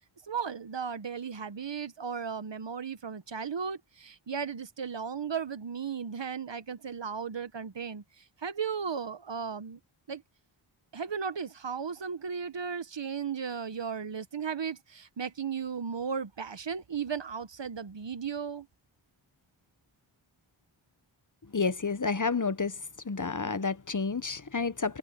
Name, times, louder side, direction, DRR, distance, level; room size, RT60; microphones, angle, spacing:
voice 1, 0.3-8.0 8.4-9.8 10.1-10.2 10.9-18.7, right 6 dB, 60° right, 1.0 m, -35 dB
voice 2, 21.5-22.8 23.0-25.0, left 4 dB, 40° left, 1.0 m, -30 dB
wide cardioid pair, 65°, 50 cm